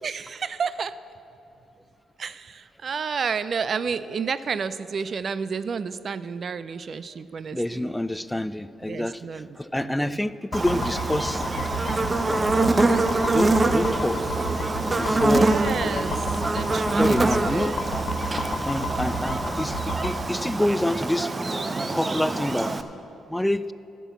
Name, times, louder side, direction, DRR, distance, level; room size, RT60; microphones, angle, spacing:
voice 1, 0.0-1.0 2.2-7.9 8.8-10.2 15.2-17.7, right 6 dB, 55° right, 15 dB, 0.4 m, -31 dB
voice 2, 7.5-9.2 9.6-11.4 13.3-14.2 15.0-15.5 17.0-17.7 18.6-19.8 20.0-21.3 21.9-22.7 23.3-23.7, left 1 dB, 10° left, 15 dB, 0.4 m, -26 dB
sound 1, 10.5-20.2, equal, 60° left, 1.1 m, -31 dB
Buzz, 10.5-22.8, right 2 dB, 30° right, 0.7 m, -25 dB
12.0 x 6.1 x 8.2 m, 2.9 s
hypercardioid pair, 50°, 0 cm